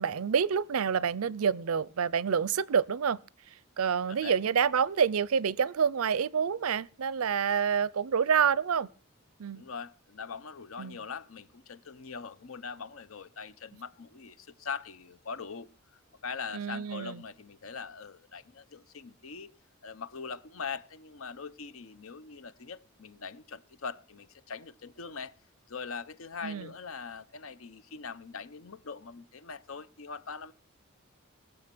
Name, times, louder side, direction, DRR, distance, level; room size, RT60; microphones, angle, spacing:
voice 1, 0.0-3.2 3.8-8.9 9.4-9.6 10.8-11.0 16.5-17.2 26.4-26.7, right 7 dB, 90° right, 0.5 m, -27 dB
voice 2, 9.5-19.5 19.8-25.3 25.7-30.5, left 5 dB, 75° left, 0.8 m, -42 dB
18.5 x 7.1 x 6.0 m
head